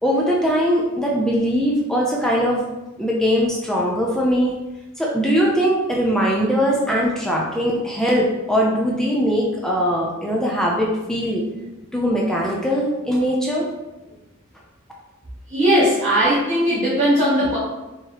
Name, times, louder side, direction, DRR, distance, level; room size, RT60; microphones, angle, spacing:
voice 1, 0.0-2.6 3.0-4.5 5.0-11.4 11.9-13.7, equal, 5° left, -3 dB, 0.5 m, -20 dB
voice 2, 15.5-17.6, equal, 35° right, -10 dB, 1.2 m, -18 dB
4.7 x 3.0 x 2.9 m, 1.0 s
head